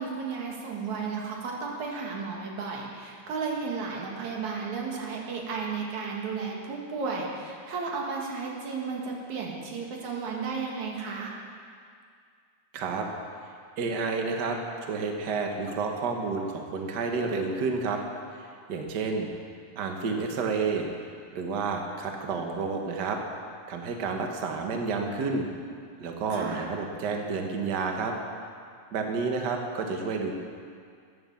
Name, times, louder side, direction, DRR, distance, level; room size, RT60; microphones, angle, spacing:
voice 1, 0.0-11.3 26.3-26.7, right 5 dB, 80° right, -1 dB, 3.2 m, -33 dB
voice 2, 12.7-13.1 13.8-18.0 18.4-19.3 19.7-20.9 21.3-23.2 23.7-25.5 26.0-28.1 28.9-30.3, right 4 dB, 50° right, 2 dB, 1.4 m, -30 dB
14.0 x 9.3 x 7.2 m, 2.2 s
omnidirectional pair, 3.3 m